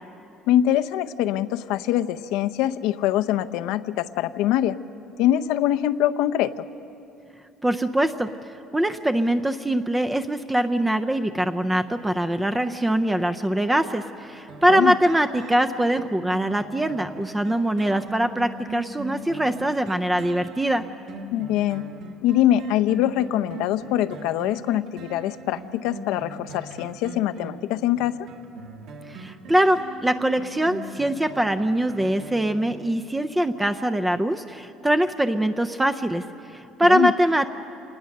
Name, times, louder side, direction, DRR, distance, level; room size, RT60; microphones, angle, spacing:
voice 1, 0.5-4.8 5.2-6.7 14.7-14.9 21.3-21.8 22.2-28.2 36.9-37.1, left 12 dB, 85° left, 11 dB, 0.7 m, -23 dB
voice 2, 7.6-8.3 8.7-20.9 29.1-37.5, right 1 dB, 10° right, 8 dB, 0.5 m, -23 dB
sound 1, 14.5-33.2 33.6-33.7, right 3 dB, 65° right, 1.8 m, -41 dB
27.5 x 19.5 x 6.6 m, 2.7 s
cardioid pair, 165°, 0 cm